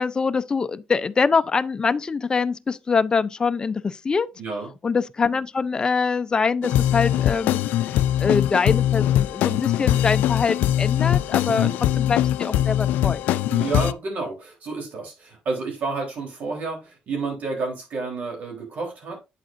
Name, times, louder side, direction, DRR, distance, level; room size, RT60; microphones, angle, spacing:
voice 1, 0.0-4.3 4.8-11.7 12.0-13.2, left 5 dB, 30° left, 0.5 m, -24 dB
voice 2, 4.4-4.7 11.5-11.7 13.5-19.2, right 3 dB, 60° right, 3.7 m, -30 dB
sound 1, 6.6-13.9, left 12 dB, 85° left, 0.4 m, -21 dB
8.6 x 7.6 x 2.6 m
cardioid pair, 100°, 3 cm